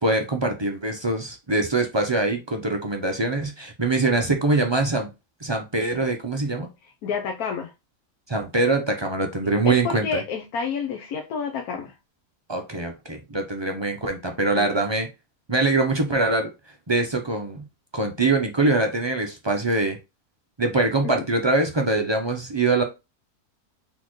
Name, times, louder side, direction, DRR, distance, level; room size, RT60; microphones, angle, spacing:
voice 1, 0.0-5.1 5.4-6.7 8.3-10.2 12.5-15.1 15.5-16.5 16.9-17.6 17.9-20.0 20.6-22.8, right 2 dB, 40° right, 0.3 m, -23 dB
voice 2, 7.0-7.7 9.7-11.9 14.5-14.8 21.0-21.1, left 6 dB, 85° left, 1.3 m, -29 dB
4.3 x 3.9 x 3.0 m
omnidirectional pair, 1.5 m